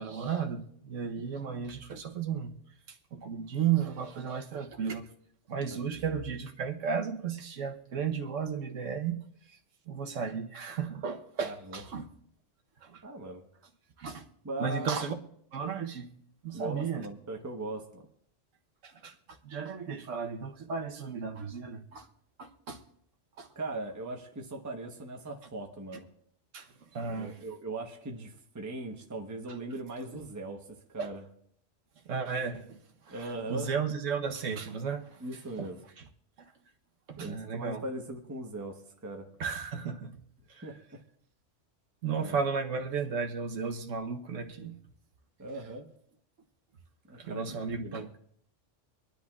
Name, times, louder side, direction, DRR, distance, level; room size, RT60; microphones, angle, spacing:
voice 1, 0.0-2.5 3.1-5.1 5.5-9.2 9.5-9.6 9.9-12.1 12.8-13.0 14.0-14.2 14.6-15.1 15.5-16.1 16.4-17.1 18.8-22.1 22.4-22.8 23.4-23.5 26.5-27.4 31.0-31.1 32.1-32.7 33.0-35.2 35.6-35.7 36.0-36.1 37.1-37.8 39.4-40.2 40.5-40.7 42.0-44.8 47.2-48.2, right 6 dB, 90° right, 1.3 m, -34 dB
voice 2, 11.4-11.8 13.0-13.4 14.4-15.0 16.5-18.1 23.5-26.1 27.1-30.6 30.9-31.2 33.1-33.7 35.2-35.8 37.2-39.3 40.6-41.0 42.2-42.4 45.4-45.9 47.1-47.5 47.8-48.1, right 2 dB, 15° right, 1.0 m, -39 dB
25.0 x 10.5 x 2.4 m
omnidirectional pair, 1.3 m